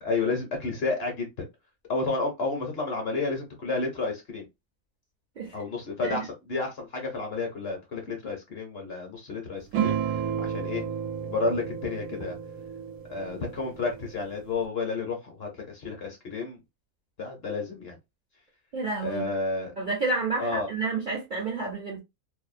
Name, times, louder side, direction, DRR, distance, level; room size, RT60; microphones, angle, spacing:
voice 1, 0.0-1.3 1.9-4.4 5.5-10.0 10.4-10.8 11.3-12.4 13.1-16.6 17.2-18.0 19.0-19.7 20.4-20.7, left 3 dB, 55° left, 0.8 m, -31 dB
sound 1, 9.7-14.6, right 8 dB, 85° right, 1.0 m, -32 dB
voice 2, 18.7-19.3 19.8-22.0, right 3 dB, 50° right, 0.6 m, -30 dB
2.7 x 2.0 x 2.4 m
omnidirectional pair, 1.5 m